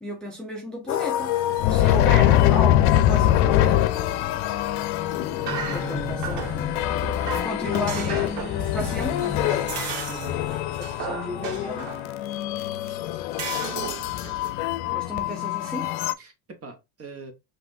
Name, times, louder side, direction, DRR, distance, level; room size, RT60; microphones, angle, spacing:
voice 1, 0.0-1.3 1.7-4.4 5.7-6.8 7.4-9.6 11.0-11.9 14.9-15.9, left 1 dB, ahead, 0.6 m, -34 dB
Cellar Cello & Waterphones, 0.9-16.1, left 12 dB, 70° left, 0.7 m, -24 dB
sound 1, 5.1-12.0, left 4 dB, 20° left, 1.5 m, -36 dB
sound 2, 5.4-6.7 7.0-12.1 12.9-13.0 13.4-14.5, right 6 dB, 55° right, 1.4 m, -35 dB
voice 2, 10.1-10.4 13.6-14.3 16.2-17.3, right 4 dB, 30° right, 1.2 m, -43 dB
5.8 x 2.7 x 2.6 m
supercardioid pair, 120°, 49 cm